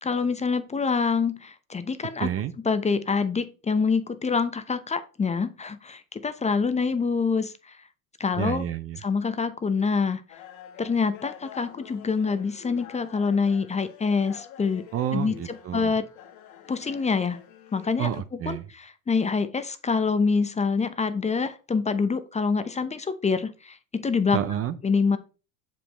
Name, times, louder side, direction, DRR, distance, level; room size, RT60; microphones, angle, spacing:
voice 1, 0.0-2.3 2.6-7.8 8.2-8.7 9.0-10.2 10.8-14.9 15.1-16.1 16.7-17.4 17.7-18.1 18.5-24.4 24.8-25.2, left 5 dB, 15° left, 0.6 m, -26 dB
voice 2, 2.2-2.5 8.4-9.0 14.9-15.9 18.0-18.6 24.3-24.8, right 10 dB, 35° right, 0.6 m, -29 dB
sound 1, 10.3-18.2, left 10 dB, 80° left, 1.6 m, -47 dB
7.0 x 5.1 x 3.3 m
hypercardioid pair, 90°, 41 cm